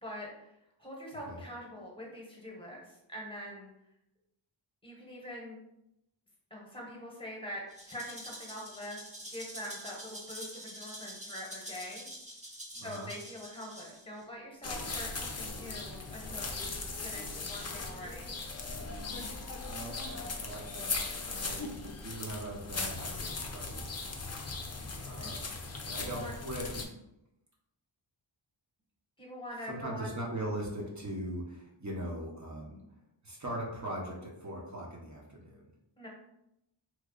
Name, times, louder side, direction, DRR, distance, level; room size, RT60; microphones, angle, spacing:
voice 1, 0.0-3.7 4.8-5.6 6.5-9.0 9.3-12.1 12.8-18.2 24.8-25.3 25.9-26.3 29.2-30.2 36.0-36.1, equal, 10° left, -3 dB, 1.2 m, -44 dB
Rattle (instrument), 7.7-14.2, equal, 15° right, 0.9 m, -46 dB
voice 2, 12.7-13.1 19.6-21.0 21.3-24.3 25.0-25.5 25.8-26.9 29.7-32.8 33.2-35.7, right 1 dB, 35° right, -3 dB, 1.1 m, -40 dB
sound 1, 14.6-26.8, left 3 dB, 35° left, 0.5 m, -38 dB
3.3 x 2.2 x 3.8 m, 0.83 s
wide cardioid pair, 80°, 48 cm